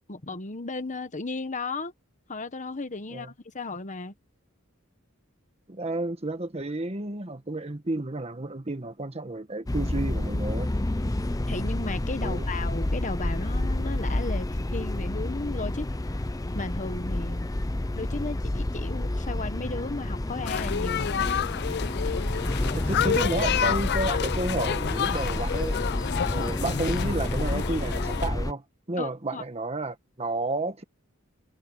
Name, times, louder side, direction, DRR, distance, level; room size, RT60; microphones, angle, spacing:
voice 1, 0.1-1.9 2.3-4.1 11.5-14.5 14.7-15.9 16.5-17.5 18.0-21.4 26.3-26.5 29.0-29.4, left 3 dB, 35° left, 1.2 m, -35 dB
voice 2, 5.7-10.7 12.2-12.5 22.3-25.8 26.3-28.6 28.9-30.8, right 2 dB, 30° right, 1.5 m, -31 dB
sound 1, 9.7-28.5, left 1 dB, 15° left, 0.7 m, -29 dB
sound 2, 20.5-28.3, left 8 dB, 55° left, 0.4 m, -29 dB
head